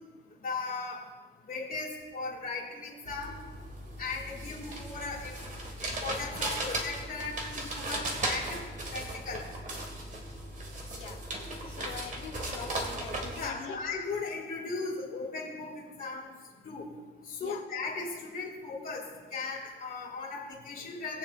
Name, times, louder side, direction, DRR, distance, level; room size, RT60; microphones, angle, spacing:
voice 1, 0.4-1.0 1.5-3.4 4.0-5.3 5.8-8.6 8.9-9.4 13.3-16.3 16.6-16.9 17.3-21.2, left 4 dB, 50° left, -7 dB, 2.5 m, -37 dB
sound 1, 3.1-13.5, right 1 dB, 40° right, 2.0 m, -37 dB
voice 2, 11.6-13.8 17.4-17.6, left 9 dB, 85° left, 3 dB, 1.2 m, -44 dB
20.5 x 7.2 x 2.6 m, 1.4 s
cardioid pair, 90°, 20 cm